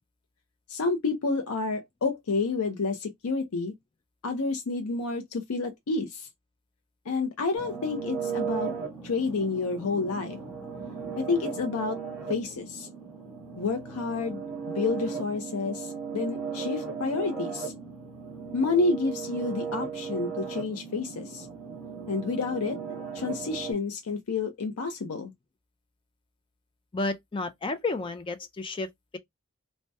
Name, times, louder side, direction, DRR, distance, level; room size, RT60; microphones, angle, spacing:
voice 1, 0.7-3.7 4.2-6.3 7.1-8.7 9.0-10.4 11.2-12.0 12.3-12.9 13.6-14.4 14.7-17.7 18.5-21.5 22.1-22.8 23.1-25.3, left 4 dB, 75° left, 0.5 m, -29 dB
sound 1, 7.6-23.7, right 6 dB, ahead, 1.2 m, -36 dB
voice 2, 26.9-29.2, left 3 dB, 25° left, 0.3 m, -32 dB
2.7 x 2.1 x 3.3 m
head